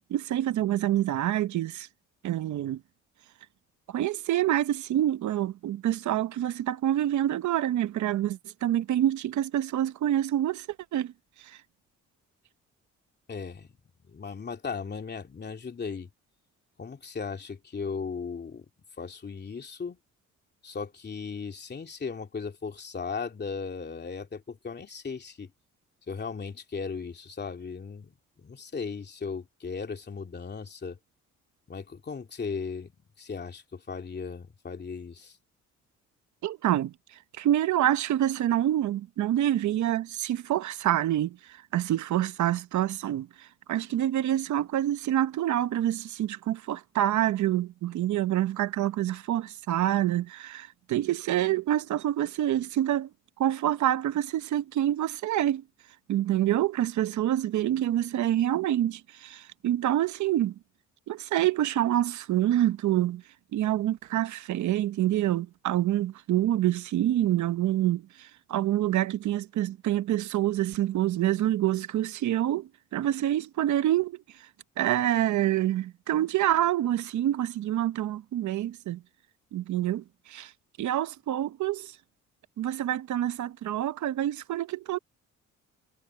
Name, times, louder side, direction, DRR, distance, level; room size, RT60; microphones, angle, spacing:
voice 1, 0.1-1.9 2.2-2.8 3.9-10.7 10.9-11.1 11.4-11.6 36.4-36.9 37.4-53.1 53.4-55.6 56.1-60.5 61.1-63.2 63.5-74.5 74.8-79.0 79.5-80.5 80.8-82.0 82.6-85.0, right 12 dB, 70° right, 1.0 m, -27 dB
voice 2, 13.3-13.7 14.0-16.1 16.8-18.7 19.0-20.0 20.6-25.5 26.1-31.0 31.7-32.9 33.2-35.4, left 5 dB, 35° left, 2.8 m, -37 dB
cardioid pair, 90°, 30 cm